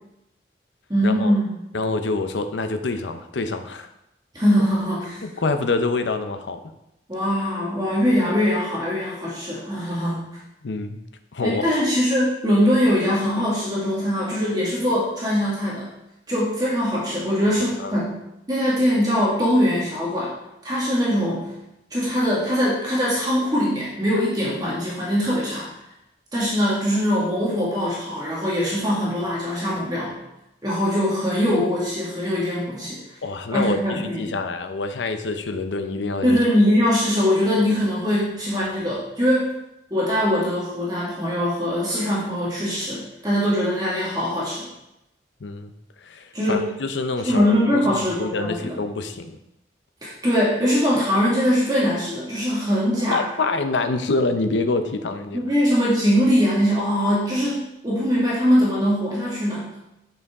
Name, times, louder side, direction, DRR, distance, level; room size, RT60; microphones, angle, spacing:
voice 1, 0.9-1.7 4.3-5.2 7.1-10.2 11.4-15.9 16.3-18.2 18.5-20.3 20.6-21.4 21.9-25.7 26.3-30.2 30.6-33.0 33.5-34.4 36.2-39.5 39.9-44.7 46.3-46.7 47.2-48.8 50.0-53.2 55.3-59.7, equal, 20° right, -6 dB, 1.7 m, -22 dB
voice 2, 1.7-3.9 5.2-6.6 10.6-11.0 11.3-11.7 17.8-17.9 33.2-36.4 45.4-45.7 46.0-49.4 53.1-55.4, left 3 dB, 85° left, 8 dB, 0.6 m, -26 dB
7.1 x 5.6 x 3.5 m, 0.87 s
head